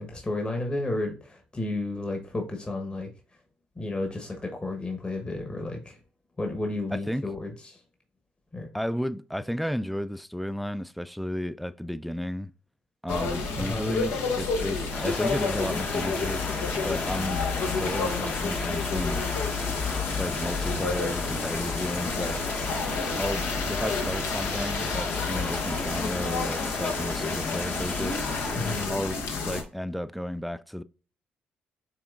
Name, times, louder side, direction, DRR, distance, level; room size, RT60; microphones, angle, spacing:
voice 1, 0.0-3.1 3.8-6.0 6.4-7.8 8.5-8.7 13.6-13.9 28.5-28.9, left 2 dB, 25° left, 1.2 m, -32 dB
voice 2, 6.9-7.3 8.7-12.5 13.0-16.5 16.8-17.4 17.7-19.3 20.2-22.4 23.2-28.3 28.9-30.8, equal, ahead, 0.3 m, -33 dB
sound 1, 13.1-29.6, left 4 dB, 80° left, 0.9 m, -30 dB
sound 2, 14.9-28.9, left 3 dB, 50° left, 1.2 m, -34 dB
6.0 x 3.5 x 2.4 m
supercardioid pair, 60°, 4 cm